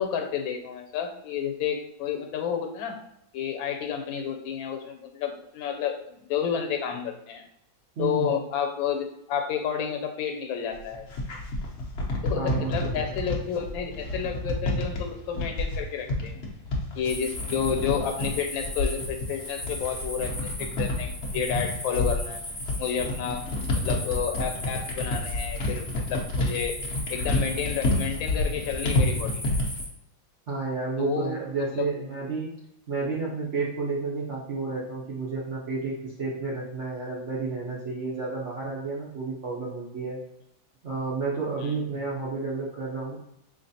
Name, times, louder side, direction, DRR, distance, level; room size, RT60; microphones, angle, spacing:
voice 1, 0.0-3.0 3.3-7.4 8.0-11.1 12.2-16.4 16.9-22.4 22.8-23.4 23.7-26.8 27.1-29.3 31.0-31.9 41.6-41.8, left 8 dB, 90° left, 4 dB, 1.4 m, -30 dB
voice 2, 8.0-8.3 12.4-13.1 30.5-32.5 32.9-40.2 40.8-43.2, right 4 dB, 55° right, -5 dB, 0.8 m, -31 dB
sound 1, 10.7-29.8, left 2 dB, 55° left, 0.7 m, -29 dB
sound 2, 17.0-29.9, left 1 dB, 25° left, 0.9 m, -38 dB
3.8 x 3.1 x 2.7 m, 0.80 s
omnidirectional pair, 2.1 m